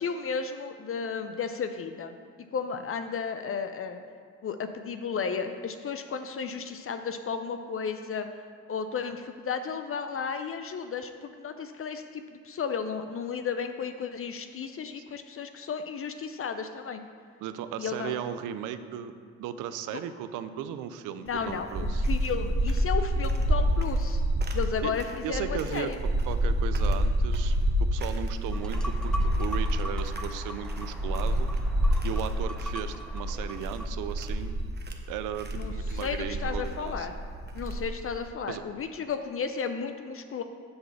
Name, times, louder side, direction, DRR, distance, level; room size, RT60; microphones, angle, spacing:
voice 1, 0.0-2.1 2.5-4.0 4.4-8.3 8.7-17.0 17.8-18.2 19.9-20.0 21.2-24.2 24.5-26.0 35.6-37.1 37.5-40.4, left 6 dB, 45° left, 8 dB, 0.5 m, -33 dB
voice 2, 17.4-19.1 19.4-22.0 24.8-24.9 25.2-27.6 27.9-31.5 32.0-34.6 35.1-37.1 38.5-38.6, right 10 dB, 85° right, 11 dB, 0.5 m, -36 dB
sound 1, 21.3-38.1, equal, 35° right, 0.9 m, -28 dB
sound 2, 28.5-33.9, equal, ahead, 0.6 m, -41 dB
7.8 x 3.9 x 6.8 m, 2.1 s
supercardioid pair, 55°, 30 cm